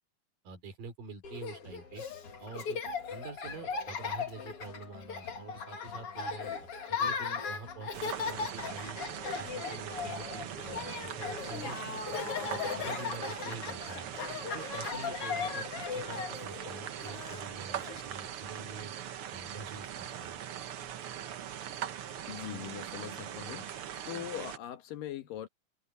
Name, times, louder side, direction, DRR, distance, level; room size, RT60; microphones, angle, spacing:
voice 1, 0.4-2.0 2.4-2.8 3.1-9.0 9.4-12.0 12.4-14.2 14.5-18.9 19.3-20.4, right 4 dB, 90° right, 5.8 m, -46 dB
Laughter, 1.2-18.0, left 5 dB, 45° left, 3.1 m, -38 dB
sound 1, 7.9-24.6, right 10 dB, 65° right, 1.4 m, -41 dB
voice 2, 22.3-23.8 24.1-25.5, left 11 dB, 80° left, 3.1 m, -41 dB
omnidirectional pair, 3.8 m